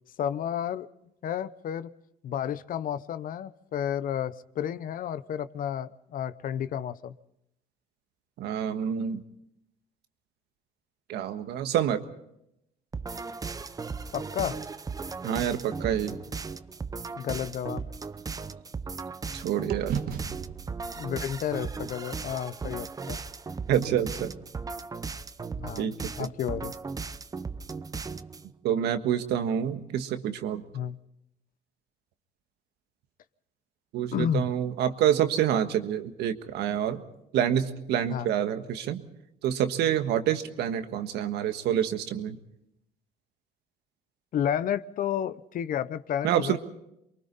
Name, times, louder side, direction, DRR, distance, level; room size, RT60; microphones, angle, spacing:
voice 1, 0.2-0.9 1.2-1.9 2.2-7.1 14.1-14.6 17.2-17.8 21.0-23.2 25.6-26.7 30.7-31.0 34.1-34.5 38.1-38.3 44.3-46.6, left 9 dB, 55° left, 16 dB, 0.8 m, -31 dB
voice 2, 8.4-9.2 11.1-12.0 15.2-16.2 19.3-19.9 23.7-24.3 25.8-26.3 28.6-30.6 33.9-37.0 37.3-39.0 39.4-42.4 46.2-46.6, right 10 dB, 80° right, 8 dB, 1.5 m, -27 dB
sound 1, 12.9-28.5, right 4 dB, 20° right, 0.7 m, -37 dB
sound 2, 17.0-19.3 19.7-23.9, right 8 dB, 65° right, 1.4 m, -40 dB
28.5 x 23.0 x 4.1 m, 0.81 s
cardioid pair, 110°, 17 cm